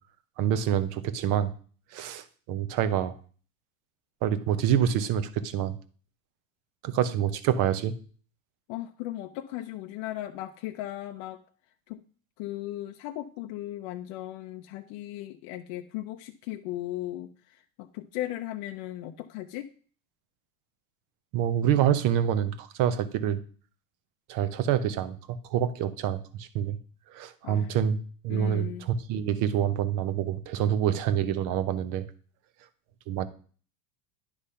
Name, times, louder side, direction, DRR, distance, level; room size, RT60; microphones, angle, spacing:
voice 1, 0.4-1.5 1.9-3.2 4.2-5.8 6.8-7.9 21.3-23.4 24.3-26.8 27.1-28.0 28.2-32.1 33.1-33.3, right 9 dB, 45° right, 14 dB, 0.8 m, -27 dB
voice 2, 8.7-11.4 11.9-12.0 12.4-19.7 27.4-27.7 28.3-28.8, left 14 dB, 50° left, 5 dB, 0.6 m, -37 dB
10.0 x 3.4 x 5.6 m, 0.43 s
supercardioid pair, 125°, 44 cm